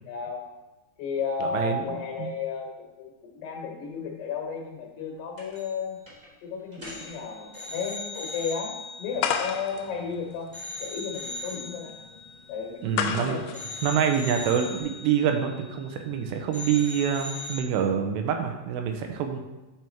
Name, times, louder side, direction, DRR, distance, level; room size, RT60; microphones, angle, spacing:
voice 1, 0.0-0.4 1.0-6.0 6.4-8.7 9.0-10.5 10.8-11.9 12.5-13.6, left 5 dB, 70° left, 0 dB, 3.1 m, -33 dB
voice 2, 1.4-1.8 2.2-2.3 12.8-13.4 13.8-19.4, right 8 dB, 85° right, 4 dB, 2.8 m, -26 dB
sound 1, 5.4-5.8 6.1-6.3 6.7-10.1 10.5-13.1 13.5-16.2 16.5-17.6, left 3 dB, 30° right, 0.7 m, -40 dB
sound 2, 9.2-14.8, left 8 dB, 90° left, 2.2 m, -33 dB
8.9 x 3.5 x 4.4 m, 1.1 s
omnidirectional pair, 5.1 m